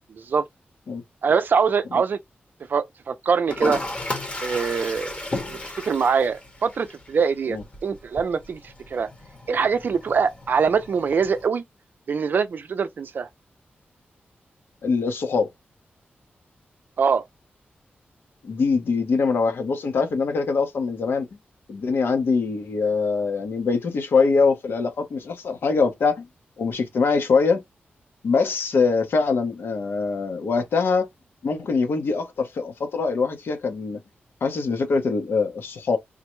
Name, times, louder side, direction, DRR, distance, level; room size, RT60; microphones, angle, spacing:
voice 1, 0.1-0.4 1.2-2.2 2.7-3.8 4.4-5.1 5.5-8.6 8.9-9.1 9.5-11.6 12.1-13.3 17.0-17.2, right 6 dB, 55° right, 0.4 m, -23 dB
Toilet flush, 3.5-11.5, left 2 dB, 30° left, 0.9 m, -35 dB
voice 2, 14.8-15.5 18.4-21.3 21.7-26.3 26.6-27.6 28.2-31.1 31.4-34.0 34.4-36.0, left 4 dB, 70° left, 0.9 m, -23 dB
3.7 x 2.2 x 3.0 m
wide cardioid pair, 155°, 4 cm